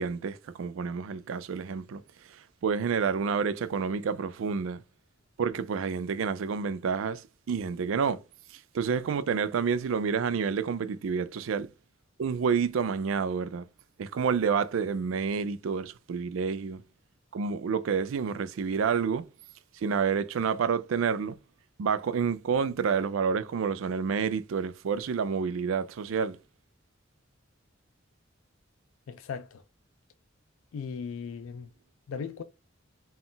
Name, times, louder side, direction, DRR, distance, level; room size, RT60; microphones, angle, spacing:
voice 1, 0.0-2.0 2.3-4.8 5.4-8.2 8.5-11.7 12.2-13.7 14.0-16.8 17.3-19.3 19.7-21.4 21.8-26.4, right 6 dB, 75° right, 0.4 m, -29 dB
voice 2, 29.1-29.6 30.7-31.7 32.1-32.4, left 6 dB, 85° left, 0.4 m, -37 dB
3.9 x 2.3 x 3.8 m
head